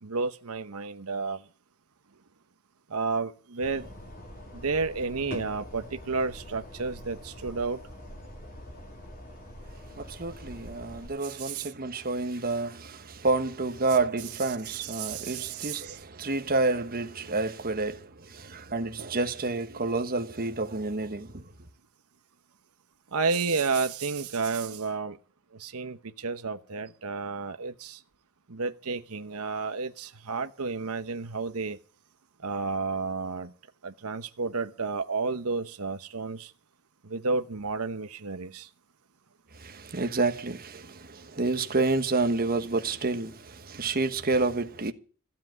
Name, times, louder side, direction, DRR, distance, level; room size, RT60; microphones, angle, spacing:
voice 1, 0.0-1.4 2.9-3.9 4.5-7.8 11.2-11.7 14.7-16.0 23.1-25.2 25.5-28.0 28.5-31.8 32.4-33.5 33.8-36.5 37.0-38.7, right 4 dB, 80° right, 1.0 m, -31 dB
sound 1, 3.6-11.1, left 1 dB, 40° left, 3.7 m, -44 dB
voice 2, 10.0-21.4 39.5-44.9, right 3 dB, 40° right, 1.3 m, -29 dB
15.5 x 7.8 x 9.3 m
head